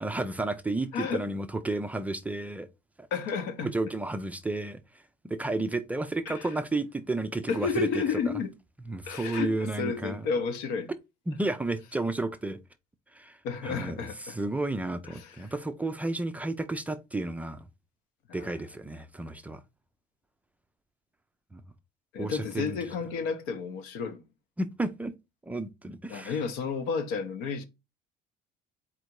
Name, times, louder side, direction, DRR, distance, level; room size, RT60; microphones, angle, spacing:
voice 1, 0.0-2.7 3.0-3.1 3.6-4.8 5.2-8.0 8.9-10.3 11.3-12.6 13.1-13.4 13.6-17.6 18.3-19.6 21.5-21.6 22.2-22.8 24.6-25.1 25.4-26.4, right 2 dB, 10° right, 0.3 m, -32 dB
voice 2, 0.9-1.3 3.1-3.7 6.3-6.5 7.5-8.5 9.1-10.9 13.4-14.4 15.0-15.5 18.3-18.5 22.1-24.2 26.1-27.6, left 5 dB, 85° left, 1.1 m, -32 dB
4.3 x 2.6 x 4.5 m
cardioid pair, 155°, 17 cm